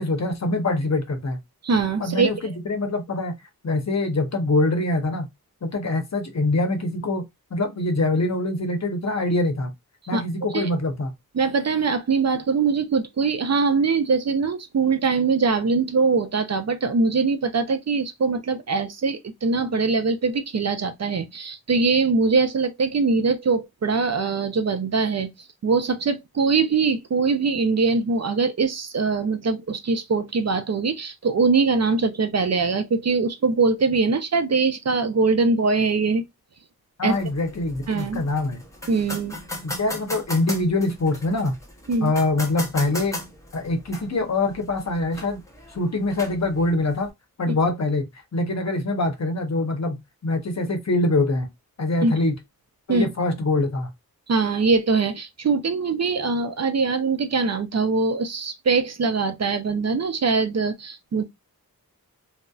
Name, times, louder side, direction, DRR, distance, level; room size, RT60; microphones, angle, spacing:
voice 1, 0.0-1.4 2.0-3.3 3.6-5.3 5.6-7.2 7.5-9.7 10.1-11.1 37.0-38.6 39.6-41.5 42.0-43.2 43.5-45.4 45.7-47.1 47.4-48.1 48.3-51.5 51.8-52.3 52.9-53.9, left 2 dB, 50° left, 0.7 m, -24 dB
voice 2, 1.6-2.3 10.1-10.7 11.3-25.3 25.6-36.2 37.0-37.1 37.9-38.2 38.9-39.4 41.9-42.1 52.0-52.1 52.9-53.1 54.3-61.2, right 4 dB, 45° right, 0.5 m, -22 dB
sound 1, 37.1-47.1, left 1 dB, 10° left, 0.7 m, -38 dB
2.6 x 2.0 x 2.3 m
wide cardioid pair, 60°, 36 cm